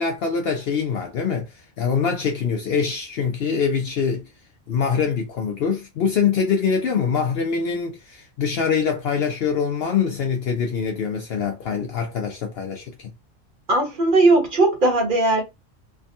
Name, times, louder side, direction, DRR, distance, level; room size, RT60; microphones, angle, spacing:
voice 1, 0.0-4.2 4.7-13.1, left 6 dB, 65° left, 0.7 m, -24 dB
voice 2, 13.7-15.4, right 2 dB, 40° right, 1.1 m, -18 dB
3.4 x 2.2 x 2.6 m
omnidirectional pair, 1.3 m